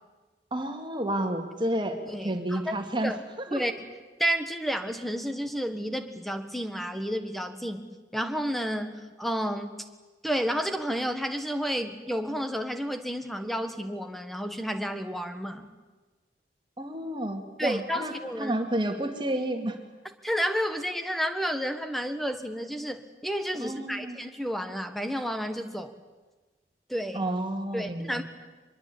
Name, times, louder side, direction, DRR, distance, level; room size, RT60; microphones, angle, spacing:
voice 1, 0.5-3.1 3.5-3.7 16.8-19.8 23.6-24.2 27.1-28.2, right 1 dB, 25° right, 5 dB, 2.5 m, -30 dB
voice 2, 2.1-2.7 3.0-3.2 3.5-3.7 4.2-7.8 8.1-9.8 10.2-15.7 17.6-18.6 20.2-25.9 26.9-27.2 27.7-28.2, equal, ahead, 8 dB, 1.6 m, -31 dB
24.5 x 21.5 x 8.7 m, 1.2 s
head